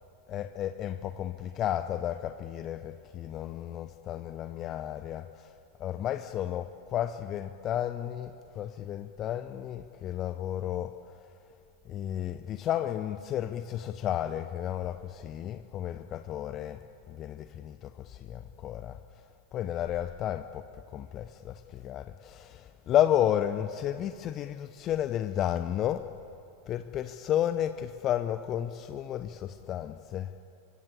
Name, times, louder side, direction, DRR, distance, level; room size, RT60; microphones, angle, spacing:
voice 1, 0.3-5.5 5.8-10.9 11.9-16.8 17.1-19.0 19.5-26.0 26.7-30.3, left 11 dB, 30° left, 0.7 m, -32 dB
25.0 x 25.0 x 8.3 m
figure-of-eight pair, 90°, 0 cm